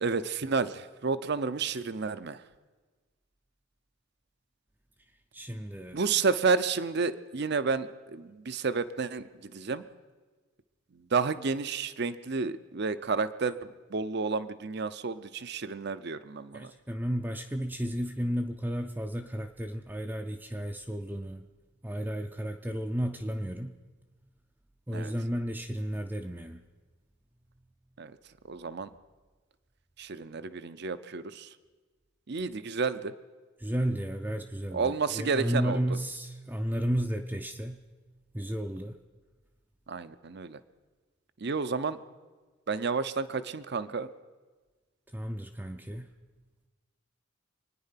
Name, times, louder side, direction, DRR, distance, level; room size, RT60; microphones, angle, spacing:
voice 1, 0.0-2.4 5.9-9.8 11.1-13.5 13.9-16.7 24.9-25.1 28.0-28.1 28.5-28.9 30.0-31.5 32.3-33.1 34.7-35.8 39.9-40.6 41.4-42.0 42.7-44.1, right 4 dB, 55° right, 13 dB, 0.6 m, -31 dB
voice 2, 5.3-6.0 16.5-21.4 21.8-23.7 24.9-26.6 33.6-37.8 38.3-39.0 45.1-46.1, equal, 10° right, 2 dB, 0.5 m, -33 dB
25.5 x 9.8 x 5.8 m, 1.3 s
head